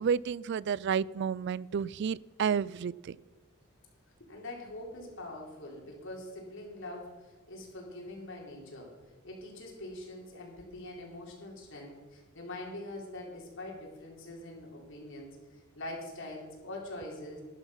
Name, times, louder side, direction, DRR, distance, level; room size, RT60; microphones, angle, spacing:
voice 1, 0.0-3.2, right 7 dB, 55° right, 22 dB, 0.3 m, -31 dB
voice 2, 4.3-8.9 9.2-17.4, left 1 dB, 65° left, -1 dB, 3.8 m, -44 dB
12.5 x 11.5 x 5.7 m, 1.3 s
head